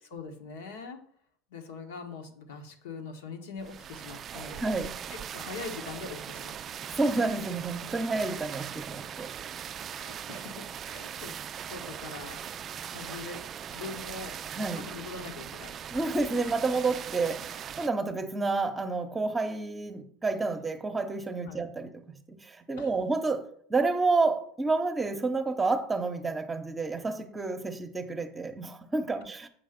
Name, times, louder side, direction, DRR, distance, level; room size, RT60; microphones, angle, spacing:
voice 1, 0.0-1.0 1.5-4.6 5.1-6.6 9.9-12.4 12.8-13.4 13.7-14.4 14.7-15.8 21.4-21.6 22.8-22.9, left 5 dB, 75° left, 1.4 m, -42 dB
sound 1, 3.6-17.9, right 9 dB, 40° right, 0.3 m, -40 dB
voice 2, 4.6-5.0 7.0-9.3 14.5-14.9 15.9-29.5, right 3 dB, 20° right, 0.9 m, -30 dB
7.4 x 5.5 x 5.2 m
hypercardioid pair, 85°, 0 cm